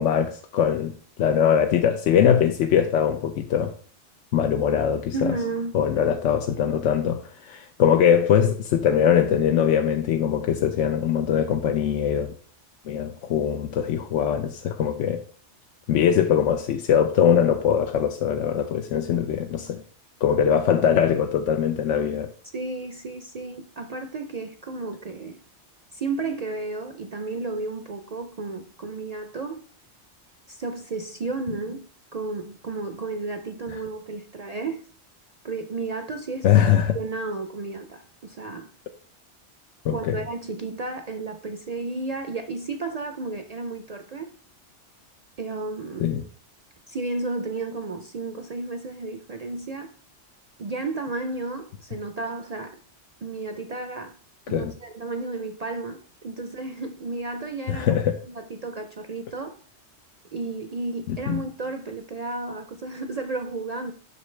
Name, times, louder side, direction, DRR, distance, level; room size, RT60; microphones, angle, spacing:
voice 1, 0.0-3.7 4.3-5.4 5.7-12.3 12.9-15.2 15.9-19.8 20.2-22.3 33.7-33.8 36.4-37.0 39.8-40.2 46.0-46.2 54.5-54.7 57.7-58.2 61.1-61.4, left 9 dB, 85° left, 0.9 m, -22 dB
voice 2, 5.1-5.8 22.5-25.4 25.9-29.6 30.5-31.9 32.1-34.9 35.4-36.5 36.9-38.7 39.9-44.3 45.4-46.2 46.9-49.9 50.6-52.8 53.2-54.2 54.5-58.0 58.3-59.6 60.3-63.9, right 3 dB, 55° right, 0.4 m, -32 dB
8.0 x 6.0 x 3.2 m
omnidirectional pair, 1.2 m